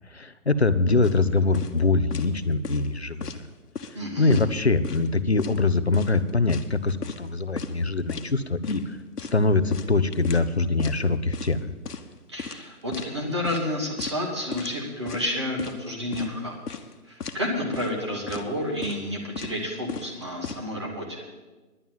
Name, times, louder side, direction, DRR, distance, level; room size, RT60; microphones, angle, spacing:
voice 1, 0.1-3.3 4.2-9.0 9.3-11.7, left 3 dB, 45° left, 12 dB, 0.5 m, -23 dB
sound 1, 1.0-1.2 1.5-1.8 2.1-2.4 2.6-3.4 3.8-4.0 4.3-5.1 5.4-5.6 5.9-7.3 7.6-7.7 8.1-8.3 8.6-8.8 9.2-10.5 10.8-11.0 11.3-11.6 11.9-12.1 12.4-13.1 13.4-13.7 14.0-14.2 14.5-14.8 15.1-15.8 16.1-16.3 16.7-16.9 17.2-17.4 17.7-18.0 18.3-18.5 18.8-19.1 19.4-19.6 19.9-20.6, left 5 dB, 80° left, 1.2 m, -36 dB
voice 2, 3.9-4.4 12.3-16.8 17.1-21.2, left 1 dB, 20° right, -1 dB, 1.3 m, -30 dB
11.0 x 9.1 x 7.3 m, 1.2 s
hypercardioid pair, 175°, 46 cm